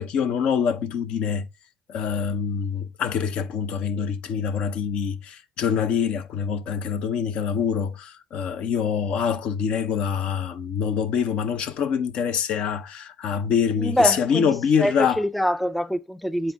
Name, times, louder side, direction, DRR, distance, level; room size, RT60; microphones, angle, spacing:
voice 1, 0.0-1.5 1.9-15.2, left 7 dB, 55° left, 0.6 m, -25 dB
voice 2, 13.8-14.5 14.8-16.5, equal, ahead, 0.3 m, -24 dB
7.8 x 4.2 x 3.4 m
hypercardioid pair, 60°, 2 cm